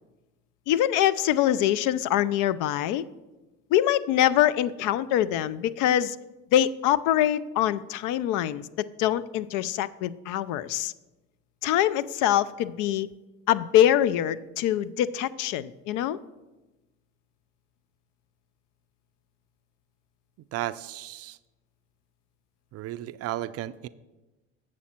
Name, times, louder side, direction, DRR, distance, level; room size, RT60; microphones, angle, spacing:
voice 1, 0.7-3.0 3.7-6.2 6.5-10.9 11.6-13.1 13.5-16.2, left 11 dB, 60° left, 17 dB, 0.5 m, -24 dB
voice 2, 20.5-21.4 22.7-23.9, right 14 dB, 45° right, 14 dB, 0.4 m, -34 dB
8.4 x 6.2 x 4.3 m, 1.1 s
hypercardioid pair, 70°, 36 cm